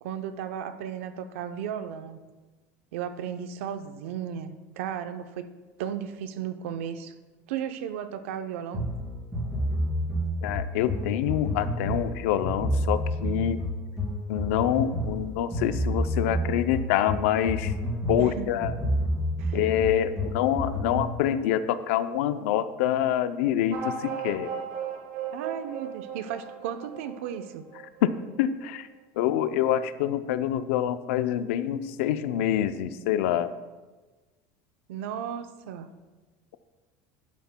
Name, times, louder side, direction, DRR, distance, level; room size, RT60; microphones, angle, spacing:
voice 1, 0.0-2.2 2.9-5.5 5.8-7.1 7.5-8.9 18.2-18.6 19.4-19.6 25.3-27.6 34.9-35.9, right 9 dB, 85° right, 10 dB, 0.6 m, -35 dB
sound 1, 8.7-21.2, equal, 10° right, 2.7 m, -29 dB
voice 2, 10.4-13.6 14.3-17.7 18.1-18.8 19.5-24.5 28.0-28.9 29.2-33.5, left 10 dB, 75° left, 12 dB, 0.5 m, -26 dB
sound 2, 23.7-28.7, right 6 dB, 65° right, 1.2 m, -37 dB
11.5 x 10.5 x 2.2 m, 1.2 s
cardioid pair, 175°, 7 cm